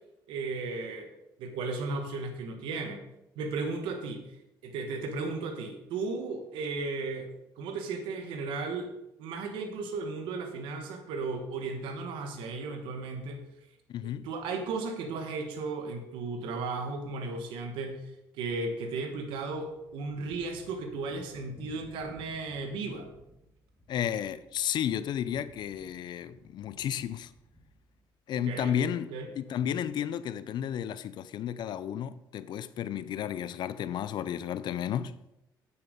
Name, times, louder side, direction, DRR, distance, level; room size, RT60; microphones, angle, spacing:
voice 1, 0.3-1.1 1.4-3.0 3.4-4.2 4.6-7.3 7.6-8.9 9.2-13.4 14.0-18.0 18.3-23.1 28.3-28.7 29.1-29.3, right 3 dB, 85° right, 1.3 m, -35 dB
voice 2, 13.9-14.3 23.9-27.3 28.3-35.2, left 9 dB, 60° left, 0.5 m, -32 dB
sound 1, 19.7-28.0, equal, 5° left, 2.4 m, -57 dB
8.3 x 7.0 x 5.1 m
cardioid pair, 90°, 8 cm